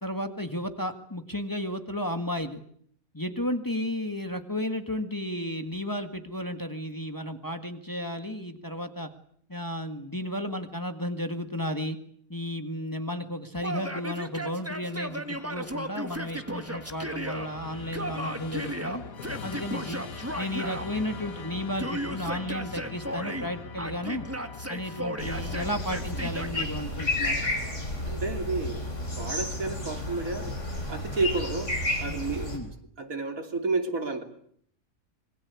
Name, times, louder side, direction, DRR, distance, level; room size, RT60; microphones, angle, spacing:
voice 1, 0.0-2.6 3.1-9.1 9.5-12.0 12.3-19.0 19.4-20.0 20.4-24.3 24.7-27.4 32.5-32.7, left 1 dB, 15° left, 7 dB, 1.8 m, -33 dB
Yell, 13.6-17.5 17.9-20.9 21.8-23.5 23.8-26.7, right 1 dB, 10° right, 1.6 m, -35 dB
Musical instrument, 14.2-29.5, left 5 dB, 85° left, 2.1 m, -43 dB
sound 1, 25.2-32.6, left 2 dB, 60° left, 5.8 m, -32 dB
voice 2, 28.0-28.8 29.2-30.6 30.9-32.6 33.0-34.2, right 3 dB, 80° right, 6 dB, 3.4 m, -31 dB
26.5 x 22.0 x 8.5 m, 0.65 s
omnidirectional pair, 1.4 m